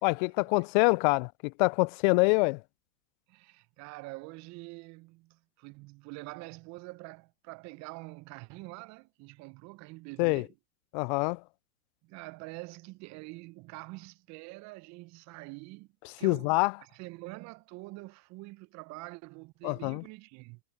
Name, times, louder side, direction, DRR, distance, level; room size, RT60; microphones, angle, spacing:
voice 1, 0.0-2.6 10.2-10.4 10.9-11.4 16.2-16.7 19.6-20.0, left 29 dB, 35° left, 0.5 m, -25 dB
voice 2, 3.3-10.5 12.0-15.9 16.2-16.5 16.8-20.6, right 24 dB, 35° right, 1.2 m, -45 dB
hypercardioid pair, 105°, 45 cm